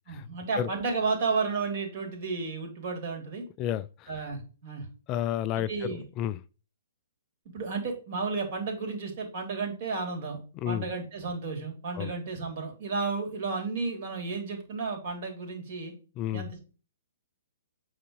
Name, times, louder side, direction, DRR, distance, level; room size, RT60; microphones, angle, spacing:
voice 1, 0.1-3.4 4.1-4.9 5.6-6.0 7.5-10.4 10.6-15.9 16.3-16.6, right 4 dB, 45° right, 3.1 m, -32 dB
voice 2, 3.6-4.2 5.1-6.4 10.6-10.9 12.0-12.1 16.2-16.5, left 11 dB, 25° left, 0.3 m, -31 dB
8.3 x 3.6 x 4.9 m
figure-of-eight pair, 120°, 0 cm